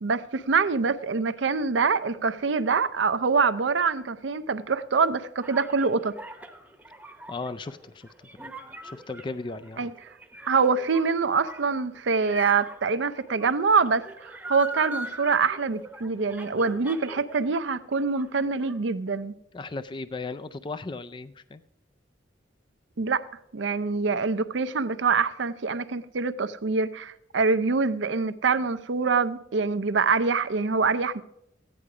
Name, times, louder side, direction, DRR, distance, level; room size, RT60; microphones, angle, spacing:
voice 1, 0.0-6.2 9.8-9.9 10.5-19.4 23.0-23.3 23.5-31.2, right 4 dB, 75° right, 0.6 m, -25 dB
shcool bell Saint-Guinoux, 5.4-17.6 17.9-18.8, right 1 dB, 10° right, 0.9 m, -41 dB
voice 2, 7.3-8.5 8.8-9.9 19.5-21.6, left 3 dB, 25° left, 0.3 m, -36 dB
14.5 x 9.9 x 4.8 m
head